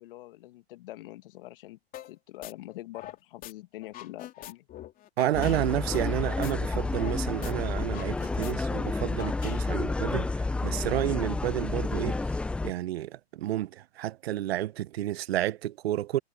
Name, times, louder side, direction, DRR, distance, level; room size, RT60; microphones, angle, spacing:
voice 1, 0.0-1.8 2.0-4.7, left 16 dB, 60° left, 2.0 m, -44 dB
sound 1, 1.9-2.1 2.4-3.5 3.8-7.2 7.4-7.5 7.8-9.9, left 13 dB, 25° left, 3.3 m, -44 dB
voice 2, 5.2-12.2 12.6-16.2, right 13 dB, 70° right, 0.9 m, -30 dB
sound 2, 5.3-12.7, left 3 dB, 5° left, 0.5 m, -30 dB
hypercardioid pair, 135°, 32 cm